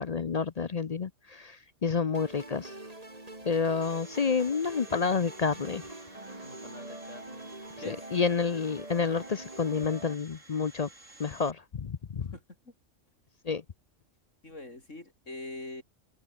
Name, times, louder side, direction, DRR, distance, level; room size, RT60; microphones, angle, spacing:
voice 1, 0.0-1.6 1.8-2.7 3.4-5.8 7.9-10.9 11.2-12.3 13.5-13.6, left 5 dB, 45° left, 0.6 m, -29 dB
sound 1, 2.1-10.1, right 2 dB, 30° right, 3.6 m, -45 dB
Domestic sounds home sounds, 3.8-11.5, right 2 dB, 90° right, 6.3 m, -52 dB
voice 2, 6.4-7.5 7.8-8.1 12.3-12.4 14.4-15.8, left 2 dB, 75° left, 5.6 m, -44 dB
omnidirectional pair, 1.3 m